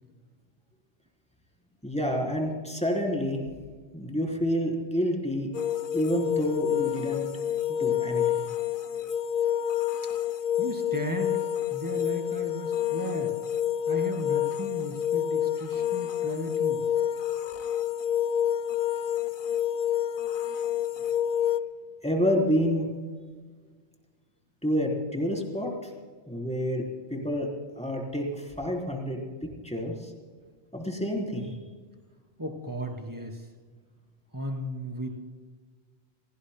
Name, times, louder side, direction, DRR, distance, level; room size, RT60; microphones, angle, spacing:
voice 1, 1.8-3.4 3.9-5.5 5.9-7.3 7.7-8.5 22.0-22.9 24.6-25.9 26.3-26.8 27.1-27.5 27.8-29.2 29.6-30.1 30.7-31.6, equal, 5° left, 0 dB, 3.6 m, -28 dB
sound 1, 5.5-21.6, left 10 dB, 60° left, 0.7 m, -28 dB
voice 2, 10.6-13.3 13.9-16.8 32.4-33.5 34.3-35.2, equal, 15° right, 3 dB, 2.9 m, -35 dB
28.5 x 18.5 x 2.2 m, 1.4 s
omnidirectional pair, 1.1 m